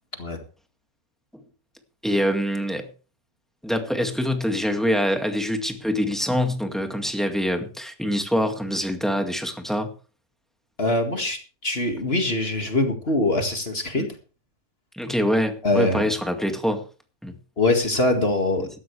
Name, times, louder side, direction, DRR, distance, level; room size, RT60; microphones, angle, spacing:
voice 1, 2.0-2.9 3.6-9.9 14.0-14.1 14.9-16.9 17.2-17.3 18.6-18.7, equal, ahead, 5 dB, 1.9 m, -25 dB
voice 2, 10.8-14.1 15.6-16.1 17.6-18.7, left 2 dB, 40° left, 5 dB, 2.2 m, -23 dB
16.5 x 13.0 x 3.3 m, 0.36 s
omnidirectional pair, 1.6 m